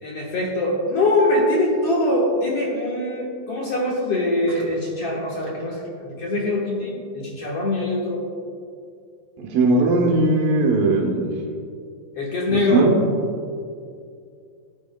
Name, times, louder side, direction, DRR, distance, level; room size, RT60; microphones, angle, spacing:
voice 1, 0.0-8.2 12.1-12.9, left 2 dB, 60° left, -4 dB, 1.7 m, -23 dB
voice 2, 9.4-11.3 12.5-13.0, right 2 dB, 80° right, 0 dB, 3.0 m, -19 dB
18.0 x 8.5 x 2.2 m, 2.4 s
omnidirectional pair, 4.0 m